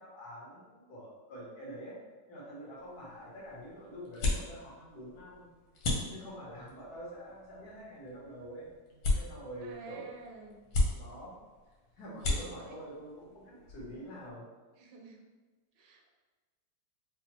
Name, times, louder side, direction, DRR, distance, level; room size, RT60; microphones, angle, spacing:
voice 1, 0.0-2.0 2.3-5.5 6.1-8.7 9.1-10.0 10.7-11.3 11.9-14.4, equal, 65° left, -5 dB, 1.4 m, -46 dB
sound 1, 2.8-14.3, left 2 dB, 85° left, 1.5 m, -37 dB
voice 2, 9.6-10.6 12.6-12.7 14.8-15.3 15.8-16.1, right 4 dB, 80° right, 1 dB, 1.2 m, -50 dB
4.7 x 2.0 x 2.9 m, 1.3 s
omnidirectional pair, 1.9 m